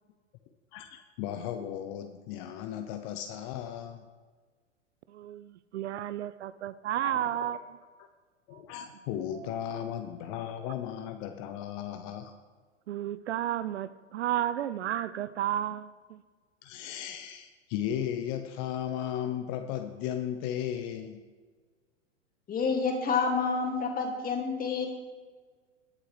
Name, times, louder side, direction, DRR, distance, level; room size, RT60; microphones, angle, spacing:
voice 1, 0.7-4.0 7.0-7.6 8.5-12.4 16.6-21.2, left 10 dB, 40° left, 7 dB, 0.8 m, -36 dB
voice 2, 5.1-7.6 8.5-8.6 9.3-9.6 10.6-10.7 12.9-16.2, right 12 dB, 60° right, 15 dB, 0.6 m, -33 dB
voice 3, 22.5-24.9, left 5 dB, 20° left, 2 dB, 2.3 m, -28 dB
20.0 x 7.7 x 3.3 m, 1.5 s
figure-of-eight pair, 100°, 38 cm